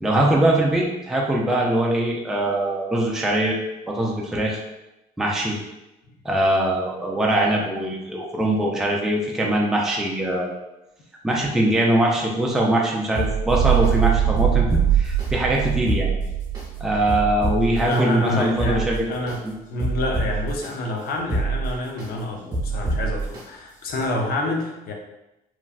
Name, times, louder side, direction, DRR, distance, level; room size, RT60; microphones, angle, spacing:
voice 1, 0.0-3.6 3.9-4.6 5.2-5.6 6.2-10.5 11.2-16.1 16.8-19.1 19.4-19.5, right 1 dB, 5° right, -3 dB, 0.4 m, -22 dB
sound 1, 13.1-13.9 14.4-15.3 15.7-16.6 17.1-18.0 18.4-19.4 19.8-20.7 21.2-22.1 22.5-23.4 23.9-24.0, right 3 dB, 25° right, 1.1 m, -26 dB
sound 2, 13.5-17.7, right 10 dB, 85° right, 0.5 m, -23 dB
voice 2, 17.9-24.9, left 1 dB, 65° left, 1 dB, 0.6 m, -27 dB
3.1 x 2.3 x 2.4 m, 0.94 s
cardioid pair, 110°, 17 cm